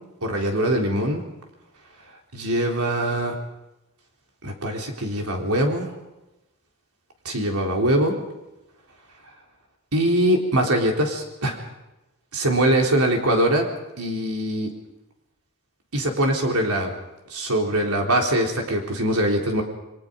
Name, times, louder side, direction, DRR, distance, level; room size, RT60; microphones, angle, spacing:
voice 1, 0.2-1.2 2.3-3.3 4.4-5.9 7.2-8.2 9.9-11.6 12.3-13.7 14.0-14.7 15.9-16.9 17.3-19.6, right 1 dB, 90° right, 1 dB, 3.9 m, -22 dB
29.0 x 23.0 x 5.3 m, 0.99 s
head